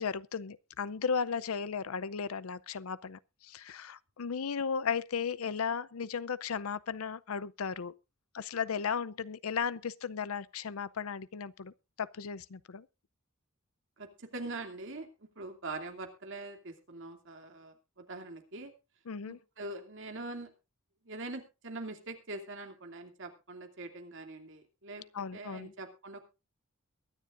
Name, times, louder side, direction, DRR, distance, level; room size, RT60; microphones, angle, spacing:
voice 1, 0.0-8.0 8.3-12.9 19.1-19.4 25.1-25.7, left 6 dB, 85° left, 0.6 m, -35 dB
voice 2, 14.0-18.7 19.2-20.5 21.0-26.2, right 2 dB, 60° right, 2.6 m, -43 dB
22.5 x 10.0 x 2.5 m
head